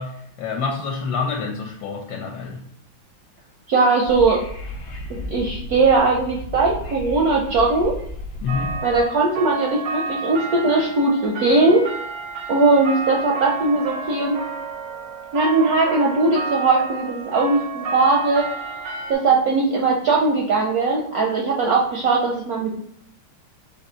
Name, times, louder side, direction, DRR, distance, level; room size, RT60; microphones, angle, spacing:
voice 1, 0.0-2.6 8.4-8.8, left 5 dB, 75° left, 0 dB, 1.3 m, -27 dB
voice 2, 3.7-4.4 5.1-8.0 8.8-11.9 12.5-14.3 15.3-18.5 19.1-22.8, right 3 dB, 70° right, -1 dB, 0.9 m, -19 dB
Wind / Subway metro underground, 4.0-9.0, left 1 dB, 60° left, 0.7 m, -34 dB
sound 1, 8.5-19.1, right 4 dB, 90° right, 1.4 m, -31 dB
4.1 x 2.7 x 4.3 m, 0.68 s
omnidirectional pair, 2.1 m